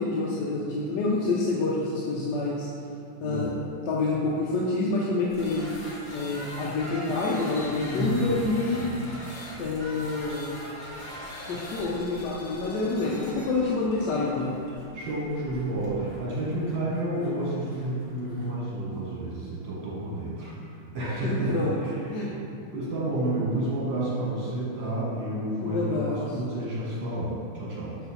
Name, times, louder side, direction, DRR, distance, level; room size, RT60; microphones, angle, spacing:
voice 1, 0.0-2.7 3.2-3.5 3.9-5.7 6.1-8.8 9.6-10.7 11.5-14.6 21.2-21.8 22.1-22.3 25.6-26.3, left 3 dB, 65° left, -4 dB, 1.1 m, -27 dB
voice 2, 3.2-3.5 7.8-8.4 8.8-9.0 14.9-20.6 20.9-22.1 22.7-28.0, right 1 dB, 70° right, -8 dB, 2.0 m, -30 dB
sound 1, 5.3-18.5, equal, 35° left, 1.3 m, -42 dB
6.9 x 4.1 x 4.1 m, 2.5 s
omnidirectional pair, 2.2 m